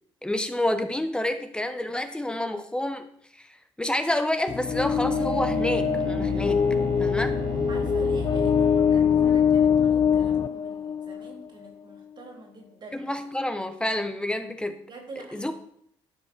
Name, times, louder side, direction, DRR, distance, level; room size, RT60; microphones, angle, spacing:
voice 1, 0.2-6.6 7.0-7.4 12.9-14.8 15.3-15.5, left 1 dB, 10° left, 8 dB, 1.0 m, -29 dB
sound 1, 4.5-11.4, left 7 dB, 40° left, 0.5 m, -23 dB
Bowed string instrument, 4.7-9.4, right 9 dB, 90° right, 0.6 m, -36 dB
voice 2, 7.7-13.1 14.9-15.5, right 3 dB, 50° right, 2 dB, 3.4 m, -45 dB
12.0 x 4.7 x 6.3 m, 0.68 s
cardioid pair, 85°, 10 cm